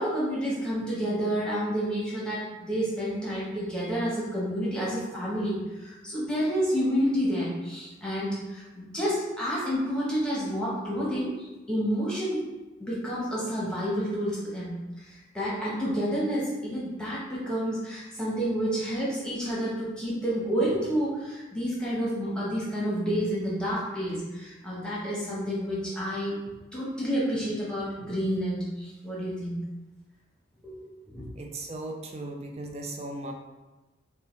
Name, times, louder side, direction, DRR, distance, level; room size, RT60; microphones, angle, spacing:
voice 1, 0.0-11.3 11.7-12.5 12.8-26.4 26.7-29.6 30.6-31.2, equal, 5° left, -7 dB, 1.0 m, -29 dB
voice 2, 31.4-33.3, right 2 dB, 35° right, 3 dB, 0.4 m, -37 dB
5.4 x 2.3 x 3.1 m, 1.1 s
head